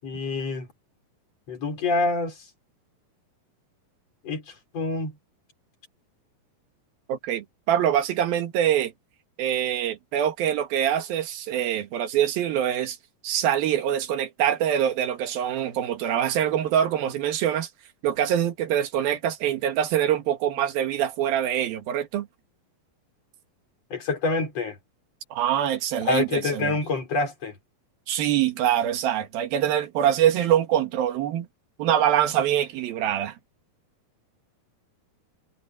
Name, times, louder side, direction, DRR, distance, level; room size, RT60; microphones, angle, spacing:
voice 1, 0.0-0.7 1.5-2.4 4.2-5.2 23.9-24.8 26.0-27.6, left 3 dB, 45° left, 6.7 m, -27 dB
voice 2, 7.1-8.9 9.4-13.0 13.2-17.7 18.0-22.3 25.3-26.8 28.1-31.5 31.8-33.3, right 10 dB, 80° right, 3.4 m, -24 dB
omnidirectional pair, 4.2 m